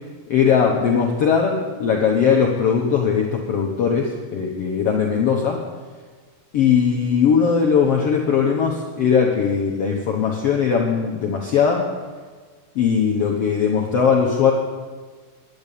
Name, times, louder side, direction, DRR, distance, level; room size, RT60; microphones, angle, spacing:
voice 1, 0.3-5.6 6.5-11.8 12.7-14.5, left 6 dB, 65° left, 0 dB, 1.5 m, -19 dB
10.5 x 10.0 x 8.4 m, 1.5 s
omnidirectional pair, 4.1 m